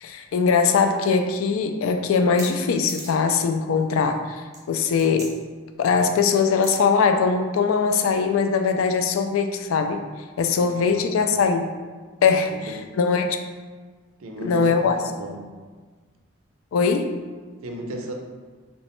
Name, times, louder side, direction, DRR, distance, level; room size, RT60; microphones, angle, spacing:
voice 1, 0.0-4.2 4.7-5.3 5.8-10.0 10.4-11.7 12.2-12.5 13.0-13.4 14.4-15.0 16.7-17.1, left 5 dB, 75° left, 6 dB, 0.3 m, -21 dB
sound 1, 2.4-2.5 2.9-3.3 3.8-4.1 4.5-5.3 6.6-6.7, right 2 dB, 15° right, 0.7 m, -38 dB
voice 2, 10.5-11.4 12.4-12.9 14.2-15.5 17.6-18.1, right 1 dB, 75° right, 2 dB, 0.4 m, -36 dB
3.1 x 3.0 x 3.0 m, 1.4 s
head